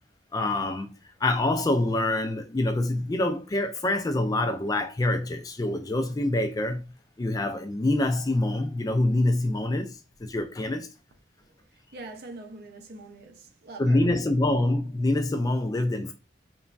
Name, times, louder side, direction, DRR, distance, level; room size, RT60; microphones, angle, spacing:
voice 1, 0.3-0.9 1.2-10.9 13.8-16.1, left 2 dB, 20° left, 0.3 m, -26 dB
voice 2, 11.9-14.1, right 2 dB, 55° right, 0.5 m, -43 dB
3.0 x 2.2 x 2.4 m
head